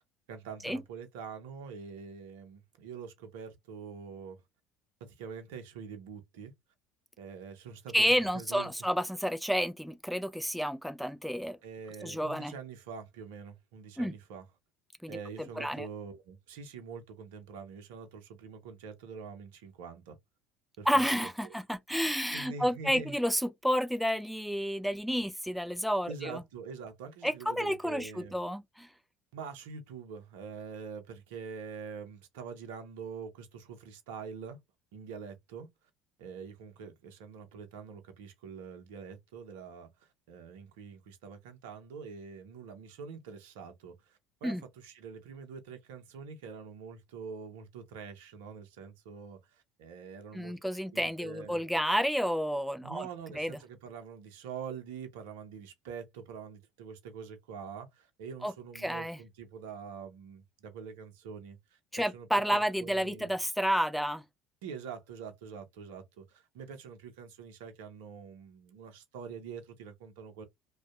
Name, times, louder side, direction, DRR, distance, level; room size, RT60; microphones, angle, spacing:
voice 1, 0.3-4.4 5.0-6.5 7.2-8.1 8.3-8.7 11.6-14.4 15.1-20.2 20.8-21.0 21.4-21.5 22.3-23.2 26.0-28.4 29.3-34.6 34.9-35.7 36.2-50.6 50.9-51.6 52.8-63.3 64.6-70.4, right 6 dB, 75° right, 0.6 m, -45 dB
voice 2, 7.9-11.6 12.0-12.5 14.0-14.1 15.0-15.2 15.6-15.9 20.9-26.4 27.2-28.9 44.4-44.6 50.3-53.1 53.4-53.6 58.4-58.5 58.8-59.2 61.9-64.2, equal, ahead, 0.4 m, -30 dB
2.6 x 2.2 x 2.4 m
hypercardioid pair, 70°, 0 cm